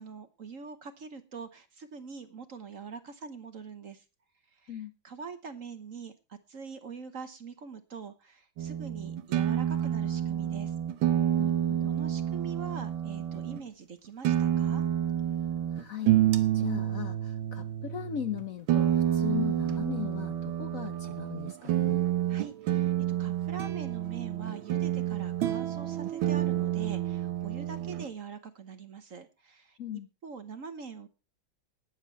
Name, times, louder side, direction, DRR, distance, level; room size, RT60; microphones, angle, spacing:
voice 1, 0.0-4.0 4.5-10.7 11.9-14.8 22.3-22.9 23.2-29.8 30.2-31.1, right 5 dB, 50° right, 10 dB, 1.2 m, -44 dB
sound 1, 8.6-13.6 14.2-28.1, right 11 dB, 85° right, 1.9 m, -29 dB
voice 2, 11.4-11.9 15.7-16.1 16.5-22.0 29.8-30.1, left 10 dB, 60° left, 10 dB, 0.9 m, -38 dB
19.5 x 7.3 x 4.5 m, 0.30 s
omnidirectional pair, 2.1 m